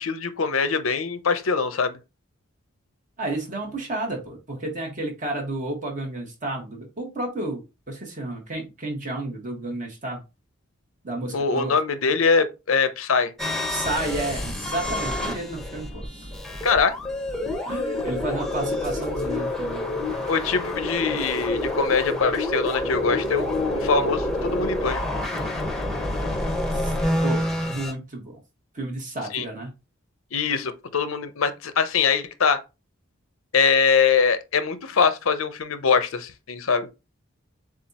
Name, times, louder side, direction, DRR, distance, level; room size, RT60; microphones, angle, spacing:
voice 1, 0.0-2.0 11.3-13.3 16.6-17.0 20.3-25.0 29.3-29.5 30.3-32.6 33.5-36.9, left 5 dB, 90° left, 0.7 m, -23 dB
voice 2, 3.2-10.2 11.0-11.8 13.7-16.3 17.7-19.9 21.1-21.2 26.7-26.9 27.2-28.4 28.7-29.7, right 2 dB, 40° right, 1.6 m, -31 dB
sound 1, 13.4-27.9, left 1 dB, ahead, 0.9 m, -28 dB
7.3 x 2.5 x 2.9 m
head